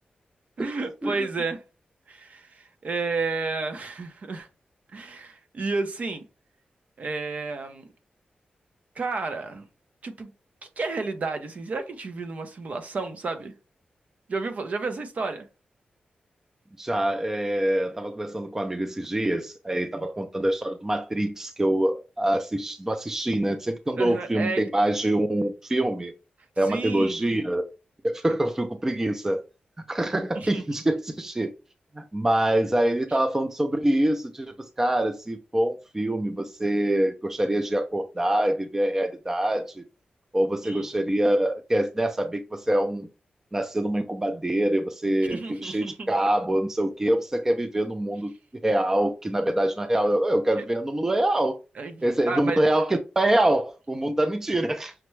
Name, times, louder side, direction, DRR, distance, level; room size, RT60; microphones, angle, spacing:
voice 1, 0.6-1.6 2.1-4.5 4.9-6.2 7.0-7.9 9.0-9.7 10.0-10.3 10.6-13.5 14.3-15.5 19.9-20.0 24.0-24.6 26.7-27.5 30.4-30.8 40.6-40.9 45.3-46.1 51.8-52.7, right 3 dB, 55° right, 0.7 m, -31 dB
voice 2, 16.8-26.1 26.6-27.6 28.0-29.4 29.9-31.5 31.9-39.8 40.3-43.1 43.5-48.3 48.6-51.6 52.0-54.9, right 1 dB, 15° right, 0.4 m, -25 dB
5.8 x 2.1 x 3.1 m
wide cardioid pair, 135°, 3 cm